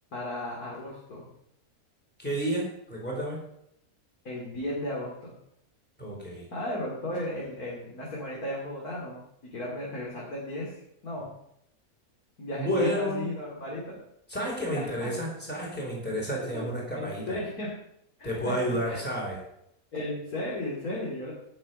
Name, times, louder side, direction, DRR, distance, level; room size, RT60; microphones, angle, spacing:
voice 1, 0.1-1.3 4.2-5.3 6.5-11.3 12.4-14.0 14.8-15.1 16.4-17.7 18.2-18.5 18.8-19.0 19.9-21.3, left 1 dB, 75° left, -5 dB, 3.3 m, -35 dB
voice 2, 2.2-3.4 6.0-6.5 12.6-13.3 14.3-17.4 18.2-19.4, equal, 5° left, -2 dB, 3.6 m, -31 dB
17.0 x 6.5 x 5.4 m, 0.77 s
omnidirectional pair, 1.6 m